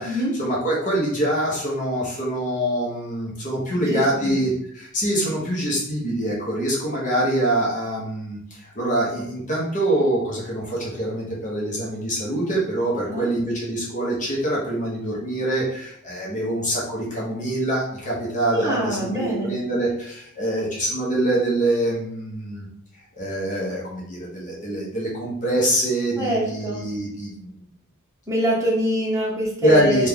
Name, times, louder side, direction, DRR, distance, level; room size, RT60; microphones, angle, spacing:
voice 1, 0.0-19.1 19.4-22.7 23.2-27.5 29.6-30.1, right 1 dB, 35° left, -5 dB, 0.9 m, -24 dB
voice 2, 3.8-4.4 13.0-13.3 18.5-19.5 26.2-26.8 28.3-30.1, right 1 dB, 15° right, -4 dB, 0.8 m, -25 dB
3.2 x 2.3 x 3.5 m, 0.69 s
head